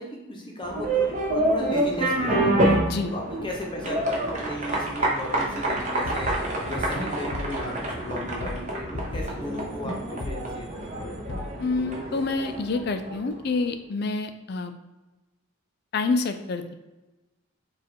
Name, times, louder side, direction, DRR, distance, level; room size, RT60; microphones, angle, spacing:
voice 1, 0.0-11.2, left 1 dB, 20° left, -1 dB, 0.8 m, -36 dB
sound 1, 0.6-13.4, right 1 dB, 35° right, 0.8 m, -27 dB
sound 2, 5.7-9.5 9.8-10.0 10.2-10.5 10.9-11.6, left 2 dB, 70° left, 0.7 m, -36 dB
voice 2, 11.6-14.7 15.9-16.7, left 3 dB, 50° left, 8 dB, 0.4 m, -27 dB
4.9 x 2.4 x 4.4 m, 1.1 s
head